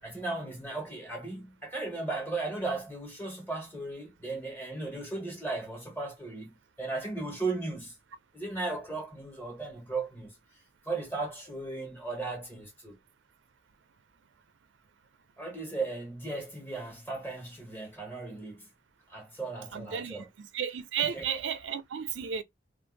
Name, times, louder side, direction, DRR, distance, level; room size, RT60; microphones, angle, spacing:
voice 1, 0.0-6.5 6.8-7.9 8.3-10.3 10.8-13.0 15.4-18.7 19.1-20.3 21.0-21.2, right 3 dB, 10° left, 1.4 m, -36 dB
voice 2, 19.7-22.4, right 8 dB, 85° right, 0.5 m, -33 dB
2.5 x 2.5 x 3.7 m
head